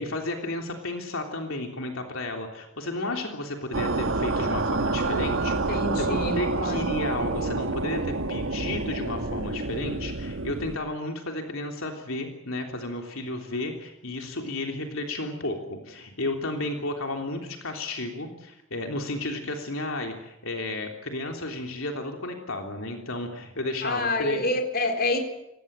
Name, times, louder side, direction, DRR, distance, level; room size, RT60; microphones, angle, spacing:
voice 1, 0.0-24.4, left 2 dB, 70° left, 3 dB, 3.3 m, -33 dB
sound 1, 3.7-10.8, right 3 dB, 60° right, 1.3 m, -28 dB
voice 2, 5.4-6.9 23.8-25.2, left 2 dB, 45° left, 6 dB, 4.1 m, -28 dB
26.0 x 19.0 x 9.0 m, 0.86 s
head